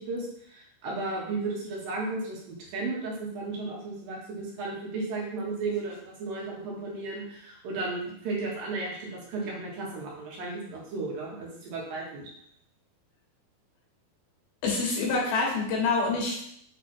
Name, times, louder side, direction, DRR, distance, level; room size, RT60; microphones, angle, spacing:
voice 1, 0.0-12.3, right 3 dB, 70° right, -2 dB, 3.1 m, -34 dB
voice 2, 14.6-16.4, left 3 dB, 80° left, -2 dB, 3.5 m, -26 dB
7.5 x 3.4 x 4.3 m, 0.69 s
omnidirectional pair, 4.3 m